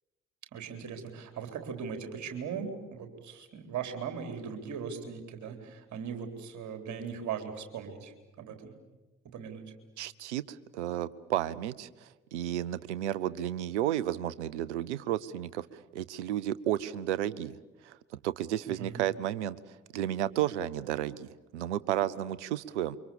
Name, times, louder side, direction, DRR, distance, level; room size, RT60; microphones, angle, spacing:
voice 1, 0.5-8.7 9.3-9.7 18.8-19.0, right 6 dB, 55° right, 5 dB, 4.0 m, -39 dB
voice 2, 10.0-17.6 17.8-18.0 18.2-19.6 19.9-23.0, right 12 dB, 80° right, 18 dB, 0.8 m, -32 dB
28.0 x 24.5 x 7.2 m, 1.2 s
figure-of-eight pair, 45°, 34 cm